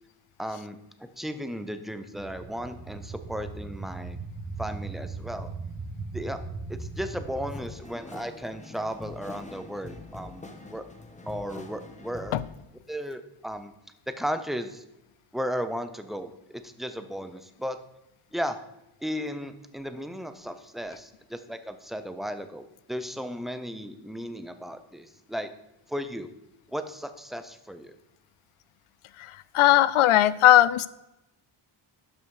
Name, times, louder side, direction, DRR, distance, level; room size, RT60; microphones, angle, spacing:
voice 1, 0.4-4.2 4.6-5.5 6.1-6.4 6.7-10.8 11.3-12.4 12.9-13.7 14.1-14.8 15.3-17.8 18.3-18.6 19.0-25.5 25.9-26.3 26.7-27.9, equal, ahead, 9 dB, 0.6 m, -35 dB
sound 1, 2.1-7.6, right 4 dB, 30° right, 1.4 m, -38 dB
sound 2, 7.5-12.6, left 2 dB, 15° left, 1.1 m, -44 dB
voice 2, 29.5-30.9, left 13 dB, 90° left, 17 dB, 0.6 m, -18 dB
12.0 x 5.6 x 4.8 m, 0.90 s
wide cardioid pair, 130°, 48 cm